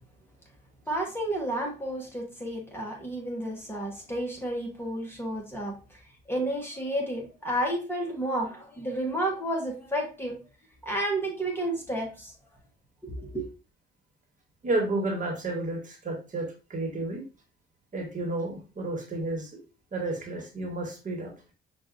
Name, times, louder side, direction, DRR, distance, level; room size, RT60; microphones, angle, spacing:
voice 1, 0.9-6.0 6.3-10.4 10.8-12.3 13.0-13.5, right 1 dB, 10° left, -1 dB, 1.2 m, -31 dB
voice 2, 14.6-17.2 17.9-19.6 19.9-21.3, right 2 dB, 40° right, 1 dB, 1.4 m, -31 dB
5.8 x 2.6 x 2.5 m, 0.33 s
cardioid pair, 90°, 20 cm